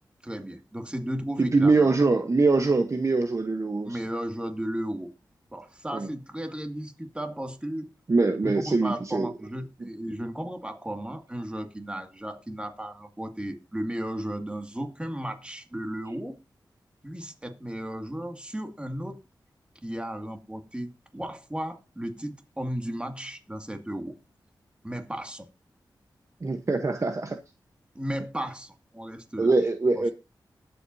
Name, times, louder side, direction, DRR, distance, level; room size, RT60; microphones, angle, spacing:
voice 1, 0.2-2.0 3.8-5.1 5.5-7.9 8.4-16.4 17.0-19.2 19.8-24.2 24.8-25.5 27.9-29.5 30.0-30.1, right 1 dB, 15° right, 2.2 m, -35 dB
voice 2, 1.4-4.0 5.9-6.1 8.1-9.3 9.8-9.9 26.4-27.4 29.4-30.1, right 3 dB, 40° right, 1.0 m, -23 dB
20.5 x 7.9 x 2.7 m
cardioid pair, 60°, 8 cm